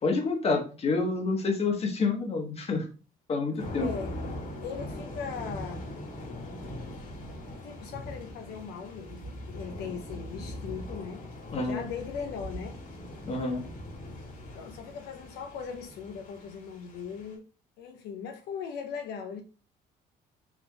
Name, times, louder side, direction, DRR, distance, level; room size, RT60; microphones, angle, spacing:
voice 1, 0.0-2.9 3.3-3.9 11.5-11.8 13.2-13.6, left 3 dB, 35° left, 1.2 m, -28 dB
Thunder / Rain, 3.6-17.3, left 1 dB, 55° left, 2.0 m, -41 dB
voice 2, 3.8-4.1 4.6-5.8 7.6-11.2 11.5-12.8 14.5-17.4 17.8-19.4, left 6 dB, 75° left, 0.6 m, -39 dB
4.7 x 3.5 x 2.7 m
cardioid pair, 110°, 17 cm